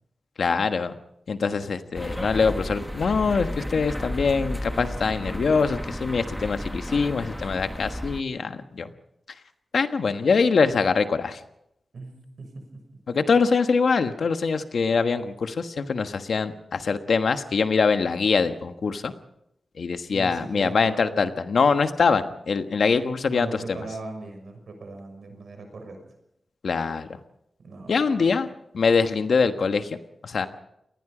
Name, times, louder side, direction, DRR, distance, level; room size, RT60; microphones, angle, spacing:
voice 1, 0.4-0.9 1.3-8.9 9.7-11.4 13.1-19.1 19.8-23.8 26.6-27.1 27.9-28.5 28.7-30.0 30.2-30.5, left 5 dB, 80° left, 8 dB, 1.3 m, -23 dB
sound 1, 1.9-8.2, equal, 5° left, 1.1 m, -33 dB
voice 2, 11.9-12.8 20.1-21.2 23.3-26.0 27.6-28.4, right 3 dB, 75° right, 5 dB, 6.4 m, -39 dB
27.0 x 20.0 x 5.1 m, 0.80 s
wide cardioid pair, 90°, 0 cm